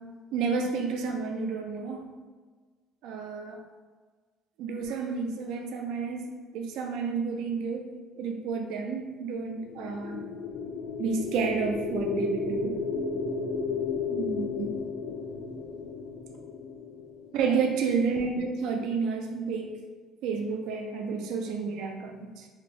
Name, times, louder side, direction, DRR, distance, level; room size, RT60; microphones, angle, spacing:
voice 1, 0.3-2.0 3.0-3.7 4.6-7.9 8.2-10.3 11.0-12.8 14.1-14.7 17.3-19.8 20.2-22.5, right 5 dB, 65° right, 3 dB, 0.3 m, -30 dB
sound 1, 9.7-17.8, left 5 dB, 75° left, 0.4 m, -33 dB
2.9 x 2.5 x 3.1 m, 1.4 s
cardioid pair, 170°, 0 cm